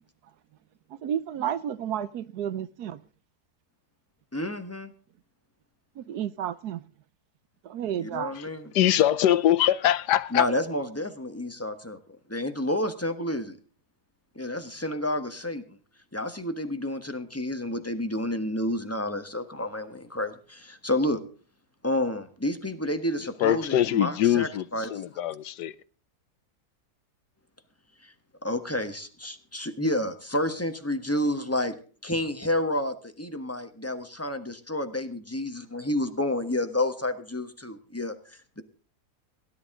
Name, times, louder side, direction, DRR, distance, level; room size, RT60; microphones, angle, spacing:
voice 1, 0.9-3.0 6.0-6.8 7.6-8.4, right 10 dB, 75° right, 1.3 m, -31 dB
voice 2, 4.3-4.9 8.0-8.7 10.3-12.0 12.3-13.6 14.3-15.8 16.1-21.2 21.8-25.0 28.0-28.1 28.4-31.7 32.0-38.6, left 1 dB, 10° left, 1.2 m, -30 dB
voice 3, 8.7-10.5 23.4-24.6 24.9-25.7, left 12 dB, 85° left, 1.4 m, -22 dB
18.0 x 11.0 x 3.7 m
omnidirectional pair, 1.7 m